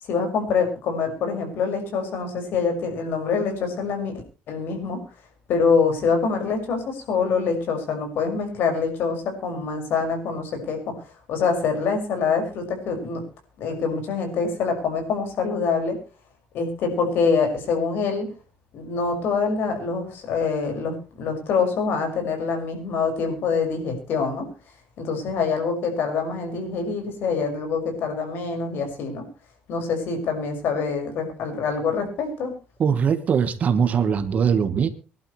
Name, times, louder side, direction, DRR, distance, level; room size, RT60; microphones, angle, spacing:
voice 1, 0.0-4.1 4.5-5.0 5.5-13.2 13.6-16.0 16.5-18.3 18.7-24.5 25.0-29.2 29.7-32.5, left 5 dB, 65° left, 4 dB, 5.8 m, -25 dB
voice 2, 32.8-34.9, right 7 dB, 40° right, 11 dB, 1.4 m, -21 dB
24.0 x 11.5 x 3.2 m, 0.32 s
cardioid pair, 145°, 4 cm